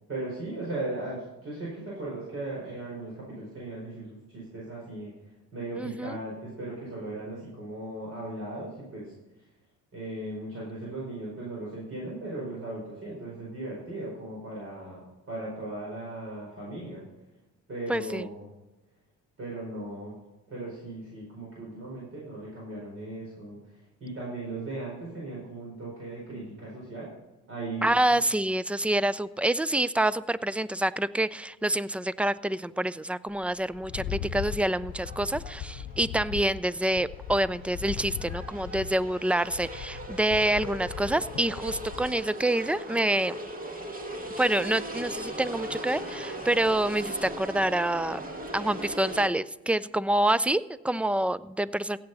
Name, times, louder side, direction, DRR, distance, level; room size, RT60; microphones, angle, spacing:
voice 1, 0.1-5.1 5.5-9.1 9.9-17.0 17.7-18.5 19.4-20.2 20.5-27.1 27.5-27.9, right 2 dB, 50° right, -5 dB, 4.8 m, -37 dB
voice 2, 5.7-6.2 17.9-18.3 27.8-43.4 44.4-48.2 48.5-52.0, right 1 dB, 5° right, 18 dB, 0.3 m, -27 dB
sound 1, 33.3-49.3, right 1 dB, 30° right, 1.8 m, -40 dB
Rattle, 33.8-42.2, left 10 dB, 80° left, 0.7 m, -39 dB
16.0 x 7.9 x 4.1 m, 1.0 s
cardioid pair, 90°, 30 cm